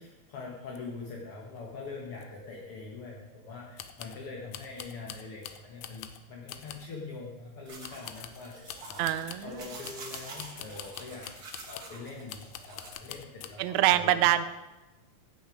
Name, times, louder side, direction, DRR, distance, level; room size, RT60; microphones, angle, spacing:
voice 1, 0.0-9.1 9.4-14.3, left 3 dB, 55° left, -2 dB, 1.8 m, -43 dB
sound 1, 0.7-0.8 1.0-1.1 1.6-1.7 2.2-2.3 3.8-4.2 4.5-6.2 6.5-6.9 7.8-9.5 9.8-12.0 12.3-13.5, left 10 dB, 80° left, 1.8 m, -45 dB
sound 2, 7.7-12.9, right 3 dB, 45° right, 1.2 m, -47 dB
voice 2, 9.0-9.6 13.6-14.5, right 13 dB, 80° right, 13 dB, 1.7 m, -25 dB
16.5 x 6.3 x 5.0 m, 1.1 s
omnidirectional pair, 3.9 m